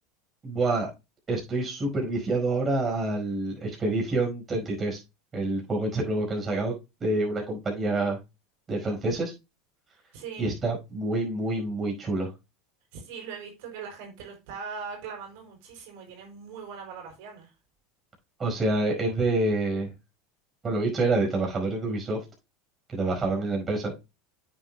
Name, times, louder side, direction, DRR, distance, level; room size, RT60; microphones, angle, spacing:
voice 1, 0.4-0.9 1.3-5.0 5.3-6.7 7.0-8.2 8.7-9.3 10.4-12.3 18.4-19.9 20.6-22.2 22.9-23.9, right 2 dB, 25° right, 4.9 m, -27 dB
voice 2, 10.1-10.5 12.9-17.5, right 6 dB, 70° right, 4.6 m, -40 dB
9.0 x 8.2 x 2.2 m
hypercardioid pair, 100°, 0 cm